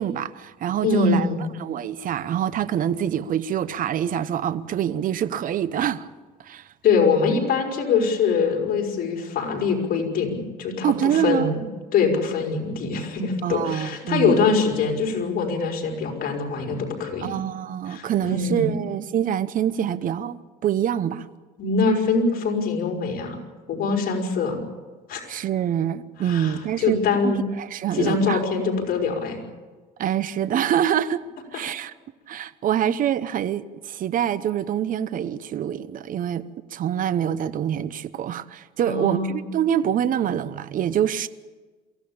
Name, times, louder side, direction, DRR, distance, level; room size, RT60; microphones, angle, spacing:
voice 1, 0.0-1.3 1.6-6.1 6.4-6.7 10.8-11.5 13.4-14.5 17.2-21.3 25.3-28.4 30.0-31.2 31.5-31.9 32.3-36.5 36.7-41.3, right 10 dB, 55° right, 0.9 m, -25 dB
voice 2, 0.8-1.5 6.8-11.6 11.9-17.3 17.9-18.8 21.6-23.4 23.7-24.6 25.1-25.2 26.2-27.4 27.9-29.4 38.8-39.4, left 4 dB, 60° left, 5.2 m, -23 dB
23.0 x 16.0 x 8.8 m
cardioid pair, 110°, 17 cm